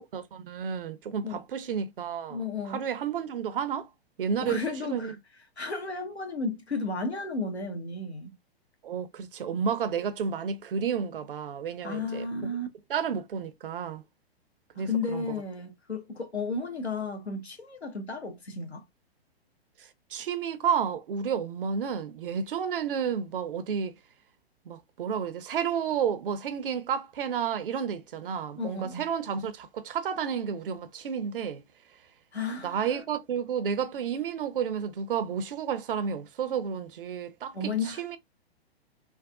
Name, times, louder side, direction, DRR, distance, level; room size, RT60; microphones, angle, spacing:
voice 1, 0.1-2.4 2.7-3.9 4.2-5.1 8.8-12.5 12.9-14.0 14.8-15.2 20.1-23.9 24.7-31.6 32.6-37.5 38.0-38.2, right 7 dB, 55° right, 0.6 m, -31 dB
voice 2, 2.3-2.8 4.4-5.2 5.6-8.3 11.8-12.7 14.7-18.8 28.6-29.0 32.3-33.0 37.5-38.2, left 3 dB, 85° left, 1.1 m, -33 dB
3.5 x 2.3 x 2.3 m
figure-of-eight pair, 115°, 32 cm